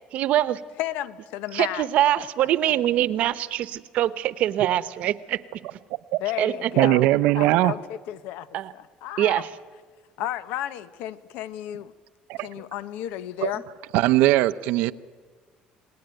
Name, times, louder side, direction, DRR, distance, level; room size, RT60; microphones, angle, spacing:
voice 1, 0.1-0.6 1.5-5.4 6.4-6.9 8.5-8.7 9.2-9.5, right 12 dB, 55° right, 15 dB, 1.0 m, -23 dB
voice 2, 0.8-1.9 2.2-2.7 6.2-7.1 7.4-8.5 8.7-9.4 10.2-11.9 12.4-13.6, left 13 dB, 85° left, 14 dB, 1.1 m, -33 dB
voice 3, 6.8-7.7 12.3-12.5 13.4-13.5 13.9-14.9, right 16 dB, 85° right, 12 dB, 0.7 m, -20 dB
28.0 x 19.5 x 9.1 m, 1.5 s
cardioid pair, 160°, 3 cm